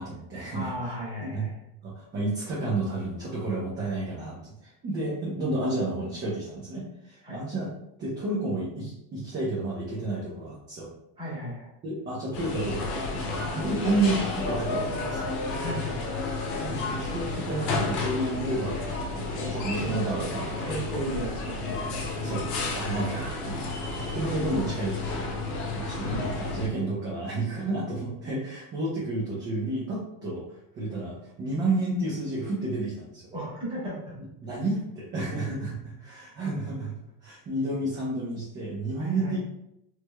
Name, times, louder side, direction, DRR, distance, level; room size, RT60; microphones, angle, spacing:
voice 1, 0.0-0.7 1.2-1.4 1.8-4.4 4.6-7.7 8.0-10.9 11.8-15.3 16.6-20.7 22.2-23.8 24.1-33.3 34.4-36.9 37.2-39.4, right 2 dB, 30° right, -6 dB, 0.7 m, -31 dB
voice 2, 0.5-1.5 7.2-7.4 11.2-11.7 15.6-16.2 19.4-19.9 20.6-22.0 33.3-34.2 39.0-39.4, right 1 dB, 15° right, -7 dB, 1.3 m, -35 dB
sound 1, 12.3-26.7, left 3 dB, 75° left, 0.9 m, -31 dB
3.3 x 3.2 x 2.2 m, 0.81 s
cardioid pair, 165°, 39 cm